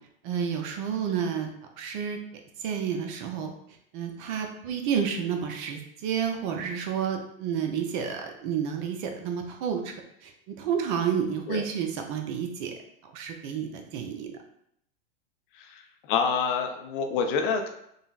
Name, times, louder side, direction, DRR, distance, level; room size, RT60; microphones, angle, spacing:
voice 1, 0.2-1.5 1.8-2.2 2.6-3.5 3.9-9.9 10.2-12.7 13.1-14.3, right 7 dB, 50° right, 4 dB, 0.6 m, -30 dB
voice 2, 16.1-17.7, left 5 dB, 55° left, 5 dB, 0.5 m, -27 dB
3.8 x 2.0 x 2.4 m, 0.73 s
hypercardioid pair, 100°, 31 cm